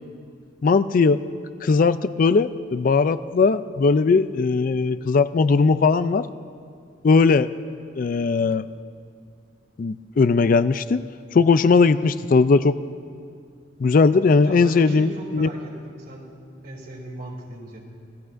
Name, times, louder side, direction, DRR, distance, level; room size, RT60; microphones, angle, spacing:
voice 1, 0.6-1.2 1.6-6.3 7.0-7.5 8.0-8.6 9.8-11.0 11.3-12.8 13.8-15.5, left 4 dB, 50° left, 13 dB, 0.4 m, -18 dB
voice 2, 14.4-16.3 16.6-17.8, right 1 dB, 55° right, 0 dB, 2.8 m, -37 dB
27.0 x 17.5 x 2.6 m, 2.3 s
head